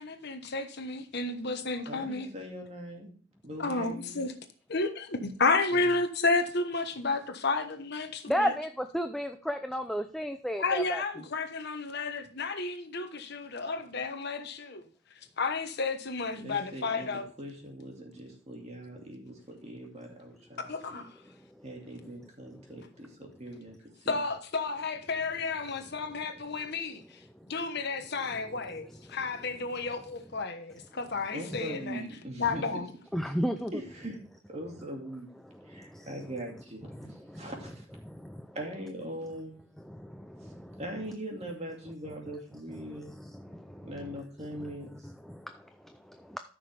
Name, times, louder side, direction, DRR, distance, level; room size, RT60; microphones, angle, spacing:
voice 1, 0.0-2.3 3.6-4.3 4.7-8.5 10.6-14.8 15.4-17.2 20.6-21.1 24.1-26.9 27.5-32.0 32.3-32.9, left 3 dB, 50° left, 1.1 m, -31 dB
voice 2, 1.9-3.1 3.4-4.2 5.7-5.9 16.4-20.6 20.9-21.0 21.6-23.7 24.1-24.2 31.3-32.9 33.2-33.3 33.7-34.2 34.5-35.3 35.6-37.9 38.5-39.6 40.4-40.5 40.8-43.1 43.8-44.9, right 1 dB, 30° right, 2.3 m, -41 dB
voice 3, 8.3-11.0 21.6-21.7 29.1-29.2 33.1-33.7 35.5-36.1 36.9-37.5 38.0-38.5 39.8-40.8 42.8-44.2 45.0-46.4, equal, ahead, 0.4 m, -34 dB
13.5 x 6.2 x 3.4 m
head